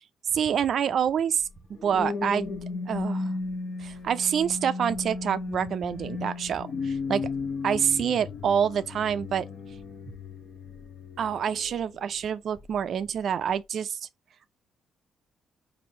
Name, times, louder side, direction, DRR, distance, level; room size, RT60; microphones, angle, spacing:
voice 1, 0.3-1.5 1.8-2.5 2.9-3.3 3.8-7.3 7.6-9.5 11.2-14.0, right 8 dB, 60° right, 0.3 m, -27 dB
sound 1, 1.4-12.0 12.6-12.8, left 3 dB, 50° left, 0.7 m, -35 dB
3.1 x 2.6 x 4.1 m
cardioid pair, 90°, 0 cm